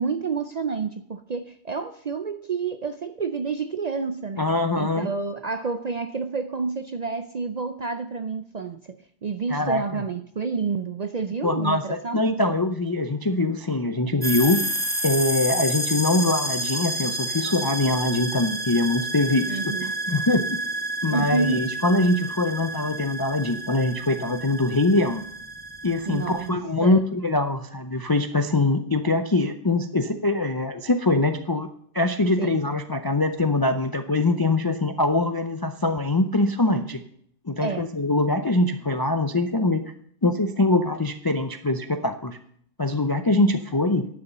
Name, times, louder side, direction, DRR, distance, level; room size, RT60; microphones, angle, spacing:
voice 1, 0.0-4.5 4.7-9.0 9.2-12.2 19.4-19.9 21.1-21.7 26.1-26.5 26.8-27.0 32.4-32.6 37.6-37.9, right 4 dB, 50° right, 10 dB, 0.5 m, -29 dB
voice 2, 4.4-5.1 9.5-10.0 11.4-14.7 15.0-20.5 21.0-25.2 25.8-31.7 31.9-37.0 37.5-39.8 40.2-42.4 42.8-44.1, left 2 dB, 35° left, 9 dB, 0.3 m, -23 dB
sound 1, 14.2-26.5, right 1 dB, 10° right, 1.0 m, -30 dB
11.0 x 7.1 x 6.7 m, 0.65 s
omnidirectional pair, 1.3 m